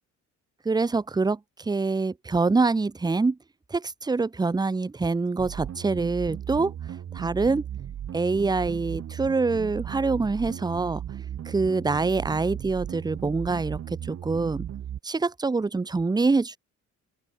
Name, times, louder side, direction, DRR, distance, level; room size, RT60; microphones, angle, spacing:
voice 1, 0.6-3.4 3.7-6.7 7.1-7.6 8.1-11.0 11.4-14.7 15.0-16.6, right 3 dB, 15° right, 0.7 m, -25 dB
sound 1, 5.4-15.0, right 10 dB, 55° right, 1.3 m, -36 dB
open air
cardioid pair, 90°, 30 cm